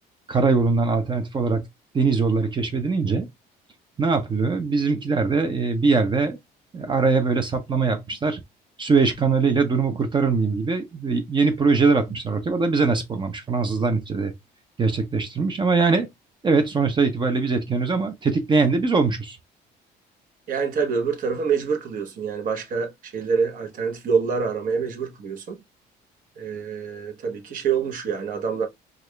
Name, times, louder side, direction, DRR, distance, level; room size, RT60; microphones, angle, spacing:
voice 1, 0.3-1.6 1.9-3.3 4.0-6.4 6.7-8.4 8.8-14.3 14.8-16.1 16.4-19.4, right 4 dB, 30° right, 0.6 m, -22 dB
voice 2, 20.5-25.6 26.4-28.7, right 6 dB, 55° right, 1.0 m, -26 dB
4.6 x 2.4 x 2.2 m
cardioid pair, 110°, 17 cm